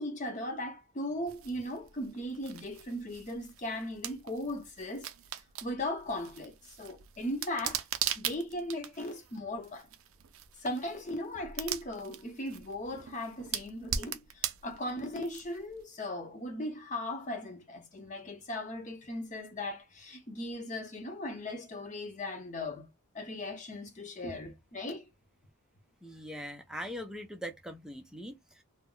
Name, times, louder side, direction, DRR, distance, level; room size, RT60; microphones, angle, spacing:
voice 1, 0.0-5.1 5.6-7.9 8.2-9.9 10.6-22.9 23.1-25.1, left 1 dB, 35° left, 0.7 m, -38 dB
sound 1, 1.3-15.8, right 10 dB, 65° right, 0.4 m, -41 dB
voice 2, 26.0-28.6, equal, 5° right, 0.5 m, -41 dB
2.2 x 2.1 x 3.7 m
head